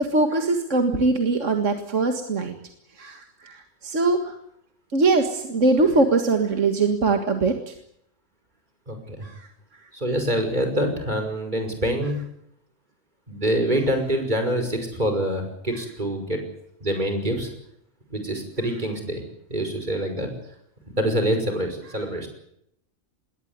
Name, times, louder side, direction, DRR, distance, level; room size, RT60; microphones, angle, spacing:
voice 1, 0.0-2.6 3.0-4.3 4.9-7.7 9.2-9.5, right 3 dB, 65° right, 5 dB, 2.2 m, -22 dB
voice 2, 8.9-9.3 9.9-12.2 13.3-16.4 16.8-17.5 18.1-19.2 19.5-20.3 20.9-22.3, right 1 dB, 35° right, 5 dB, 5.9 m, -25 dB
21.0 x 18.0 x 9.6 m, 0.74 s
omnidirectional pair, 1.4 m